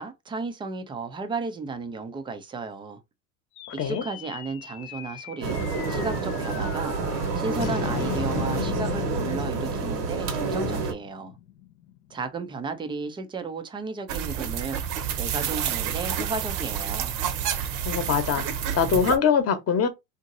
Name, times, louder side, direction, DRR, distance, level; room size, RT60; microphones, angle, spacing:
voice 1, 0.0-3.0 3.7-5.6 5.9-7.0 7.3-11.4 12.1-14.8 15.1-17.1, right 4 dB, 10° right, 0.3 m, -34 dB
sound 1, 3.6-12.1, left 11 dB, 70° left, 0.8 m, -37 dB
sound 2, 5.4-10.9, right 4 dB, 90° right, 1.1 m, -28 dB
sound 3, 14.1-19.2, right 9 dB, 60° right, 0.8 m, -29 dB
voice 2, 17.8-19.9, left 6 dB, 30° left, 0.8 m, -23 dB
2.8 x 2.7 x 2.6 m
supercardioid pair, 105°, 47 cm